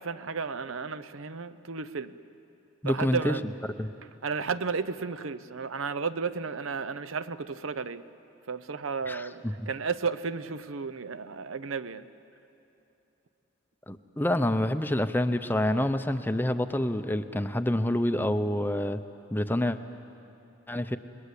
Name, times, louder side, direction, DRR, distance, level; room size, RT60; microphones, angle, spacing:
voice 1, 0.0-2.2 2.8-3.5 4.2-8.0 8.5-12.1, right 5 dB, 70° right, 14 dB, 0.7 m, -33 dB
voice 2, 2.8-3.3 3.8-3.9 9.1-9.5 13.9-19.0 19.3-19.8 20.7-21.0, left 1 dB, 10° left, 9 dB, 0.6 m, -27 dB
29.0 x 21.0 x 8.4 m, 2.9 s
head